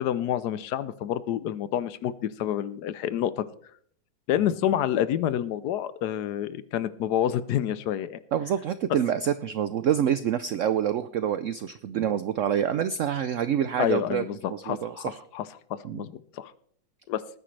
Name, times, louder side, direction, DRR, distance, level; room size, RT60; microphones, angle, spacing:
voice 1, 0.0-3.4 4.3-8.2 13.8-16.5 17.1-17.2, left 10 dB, 70° left, 15 dB, 1.1 m, -28 dB
voice 2, 8.3-15.2 15.8-16.1, right 9 dB, 85° right, 12 dB, 0.6 m, -27 dB
19.5 x 9.9 x 3.3 m, 0.62 s
omnidirectional pair, 2.0 m